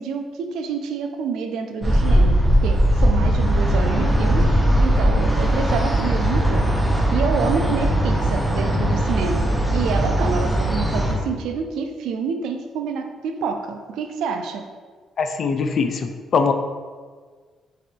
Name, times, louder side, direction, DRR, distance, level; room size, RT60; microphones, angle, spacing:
voice 1, 0.0-6.8 7.1-14.6, right 5 dB, 85° right, 6 dB, 0.3 m, -28 dB
sound 1, 1.8-11.1, equal, 5° right, 1.1 m, -19 dB
voice 2, 15.2-16.5, left 5 dB, 55° left, 7 dB, 0.3 m, -22 dB
3.0 x 2.9 x 4.4 m, 1.5 s
cardioid pair, 90°, 0 cm